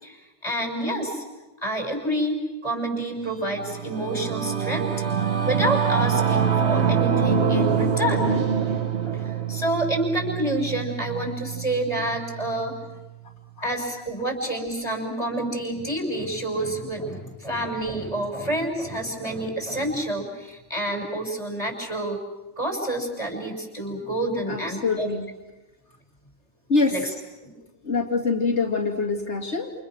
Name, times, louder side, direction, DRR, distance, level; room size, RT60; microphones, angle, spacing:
voice 1, 0.0-1.2 1.6-12.7 13.6-22.2 22.6-25.1 26.9-27.1 27.4-27.5, right 1 dB, 25° left, 3 dB, 6.3 m, -28 dB
Singing / Musical instrument, 3.3-13.0, right 7 dB, 70° right, 1.5 m, -25 dB
voice 2, 24.5-25.3 26.7-27.1 27.8-29.7, left 4 dB, 80° left, -2 dB, 3.0 m, -24 dB
29.5 x 28.5 x 6.2 m, 1.1 s
omnidirectional pair, 1.2 m